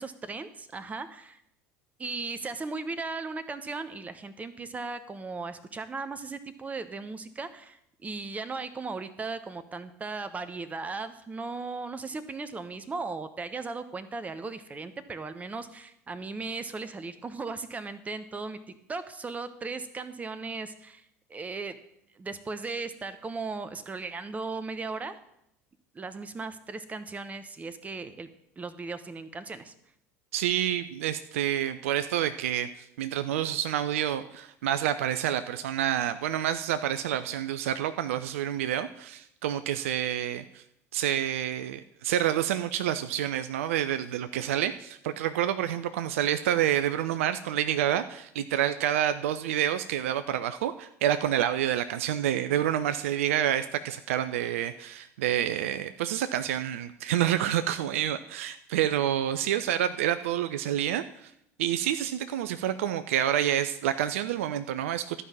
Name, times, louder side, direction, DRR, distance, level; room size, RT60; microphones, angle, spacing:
voice 1, 0.0-1.4 2.0-21.0 21.3-21.8 22.1-25.2 25.9-28.3 28.6-29.7, right 3 dB, 20° right, 12 dB, 1.0 m, -37 dB
voice 2, 30.3-40.6 40.9-61.3 61.6-65.2, right 11 dB, 60° right, 11 dB, 0.5 m, -28 dB
13.0 x 5.5 x 7.4 m, 0.76 s
figure-of-eight pair, 70°, 8 cm